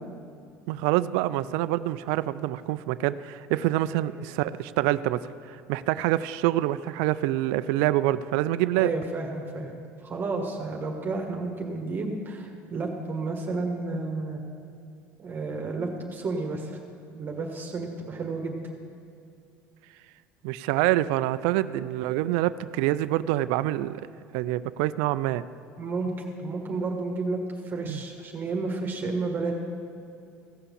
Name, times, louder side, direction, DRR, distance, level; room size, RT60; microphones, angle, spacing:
voice 1, 0.7-8.9 20.4-24.0 24.3-25.4 27.9-28.0, right 15 dB, 80° right, 14 dB, 0.3 m, -26 dB
voice 2, 3.9-4.2 8.7-9.7 10.0-14.4 15.2-16.8 17.1-18.6 25.8-26.1 26.4-29.5, right 3 dB, 35° right, 1 dB, 1.5 m, -31 dB
15.5 x 5.7 x 7.1 m, 2.5 s
supercardioid pair, 100°, 6 cm